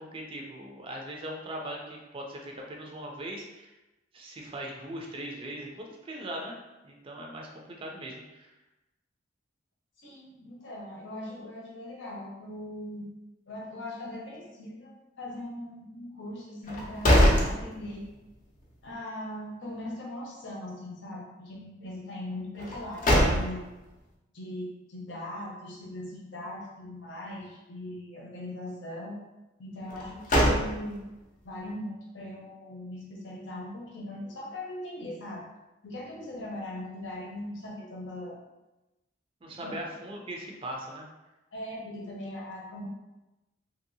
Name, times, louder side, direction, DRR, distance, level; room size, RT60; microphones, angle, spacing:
voice 1, 0.0-3.7 4.1-6.5 6.8-8.5 39.4-41.0, right 1 dB, 30° right, 0 dB, 0.4 m, -40 dB
voice 2, 10.0-13.1 13.5-18.1 18.8-23.7 24.3-29.2 29.6-31.1 31.4-35.5 35.8-38.4 39.6-39.7 41.5-42.9, left 1 dB, 75° left, -3 dB, 0.8 m, -40 dB
sound 1, 16.6-18.3 18.7-18.8 22.6-23.8 29.9-31.2, equal, 45° left, 0.6 m, -24 dB
2.9 x 2.7 x 2.7 m, 1.0 s
head